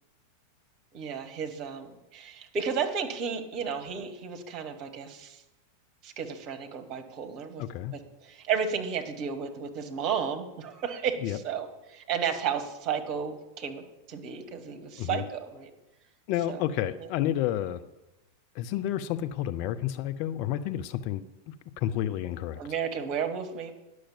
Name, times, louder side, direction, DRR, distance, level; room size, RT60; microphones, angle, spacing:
voice 1, 0.9-5.4 6.0-7.6 7.9-13.8 14.1-15.7 16.5-16.6 17.0-17.1 22.6-23.7, right 7 dB, 35° right, 5 dB, 1.5 m, -33 dB
voice 2, 7.6-7.9 11.2-11.4 15.0-15.2 16.3-17.8 18.5-22.6, left 12 dB, 45° left, 11 dB, 0.5 m, -30 dB
10.0 x 6.3 x 7.3 m, 0.98 s
figure-of-eight pair, 90°, 0 cm